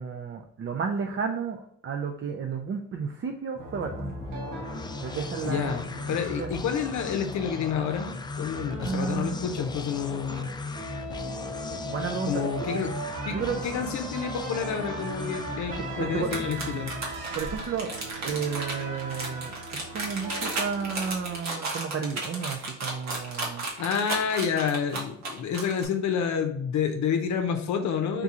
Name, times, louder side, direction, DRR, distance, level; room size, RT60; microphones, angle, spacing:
voice 1, 0.0-4.2 5.0-5.7 6.1-6.5 8.8-9.6 11.7-12.9 13.3-13.6 16.0-16.3 17.3-17.9 18.2-23.7 28.1-28.2, right 6 dB, 40° right, 3 dB, 0.5 m, -32 dB
sound 1, 3.5-17.3, left 3 dB, 15° left, 0.3 m, -37 dB
sound 2, 3.6-21.4, right 2 dB, 90° right, 0.9 m, -40 dB
voice 2, 5.4-10.5 12.3-12.9 13.2-16.9 23.8-28.2, left 7 dB, 70° left, 5 dB, 0.6 m, -29 dB
sound 3, 16.2-25.8, right 3 dB, 65° right, 1.4 m, -33 dB
3.7 x 2.9 x 3.6 m, 0.69 s
cardioid pair, 90°, 30 cm